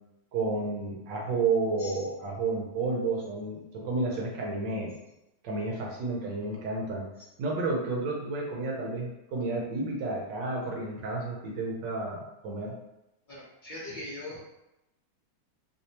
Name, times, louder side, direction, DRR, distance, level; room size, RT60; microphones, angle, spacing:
voice 1, 0.3-4.9 5.4-7.0 7.4-12.7, right 3 dB, 70° right, -2 dB, 1.2 m, -31 dB
voice 2, 13.3-14.4, left 1 dB, 50° left, -8 dB, 0.5 m, -41 dB
3.4 x 2.9 x 2.8 m, 0.92 s
omnidirectional pair, 2.3 m